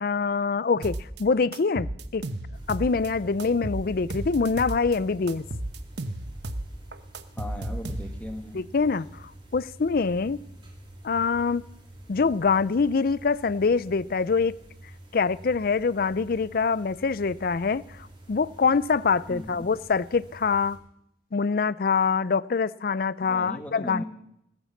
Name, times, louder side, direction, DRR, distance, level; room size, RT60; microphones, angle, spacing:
voice 1, 0.0-2.2 2.7-5.5 8.5-10.4 11.0-11.6 12.1-14.6 15.1-20.8 21.3-24.0, left 5 dB, 55° left, 19 dB, 0.5 m, -25 dB
sound 1, 0.8-1.2 1.5-3.1 3.4-5.0 5.3-8.4, right 1 dB, 70° right, 1.0 m, -34 dB
sound 2, 2.5-20.8, right 1 dB, 30° right, 3.5 m, -48 dB
voice 2, 7.4-8.6 19.3-19.7 23.2-24.0, left 1 dB, 10° left, 4 dB, 1.8 m, -37 dB
19.5 x 9.0 x 7.2 m, 0.78 s
head